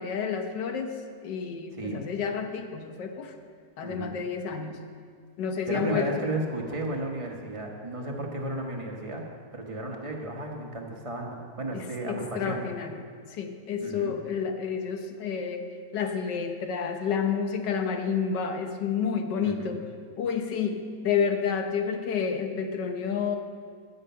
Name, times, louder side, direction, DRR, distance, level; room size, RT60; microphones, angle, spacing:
voice 1, 0.0-3.3 3.8-4.8 5.4-6.3 11.7-13.0 13.3-15.6 15.9-19.8 20.2-23.4, left 6 dB, 90° left, 5 dB, 1.6 m, -30 dB
voice 2, 1.7-2.0 3.8-4.1 5.7-9.2 9.5-12.6 13.8-14.2 19.4-19.8, right 2 dB, 20° right, 0 dB, 1.1 m, -34 dB
15.0 x 6.6 x 5.6 m, 2.1 s
omnidirectional pair, 1.8 m